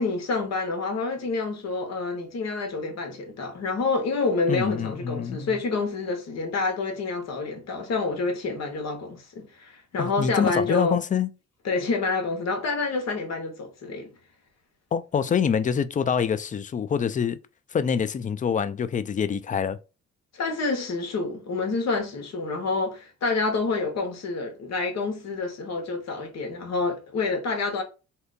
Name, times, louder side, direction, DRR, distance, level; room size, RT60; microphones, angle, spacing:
voice 1, 0.0-11.0 11.6-14.1 20.3-27.8, left 3 dB, 60° left, 1.3 m, -28 dB
voice 2, 4.5-5.6 10.0-11.3 14.9-17.4 17.7-19.8, left 7 dB, 25° left, 0.3 m, -26 dB
2.8 x 2.5 x 3.6 m
cardioid pair, 90°, 30 cm